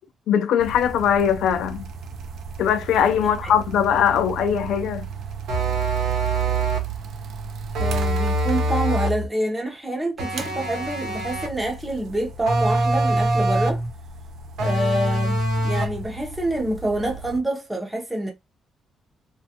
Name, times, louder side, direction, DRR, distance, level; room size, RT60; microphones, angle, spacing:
voice 1, 0.3-1.9 2.6-5.1, left 8 dB, 85° left, 0.4 m, -21 dB
sound 1, 0.6-9.2 10.3-17.4, right 5 dB, 60° right, 0.4 m, -37 dB
sound 2, 5.5-7.0 7.7-9.3 10.2-11.6 12.5-13.9 14.6-16.0, right 2 dB, 85° right, 0.8 m, -23 dB
voice 2, 7.8-13.8 14.6-18.3, right 1 dB, 5° right, 0.6 m, -27 dB
3.2 x 2.2 x 2.8 m
cardioid pair, 165°, 0 cm